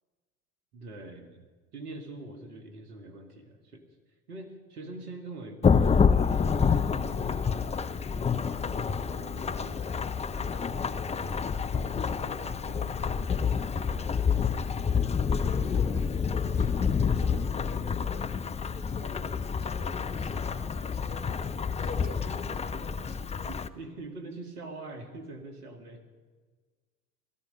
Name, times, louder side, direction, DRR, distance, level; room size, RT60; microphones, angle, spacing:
voice 1, 0.7-1.5 1.7-3.8 4.3-9.8 10.5-14.3 22.7-22.8 23.5-26.0, right 2 dB, 80° right, 6 dB, 2.2 m, -45 dB
Thunderstorm / Rain, 5.6-23.7, left 6 dB, 15° left, 0.5 m, -28 dB
voice 2, 15.5-18.3 18.7-21.2 21.8-23.2, left 3 dB, 75° left, 4 dB, 2.7 m, -45 dB
17.0 x 14.0 x 5.4 m, 1.4 s
hypercardioid pair, 70°, 44 cm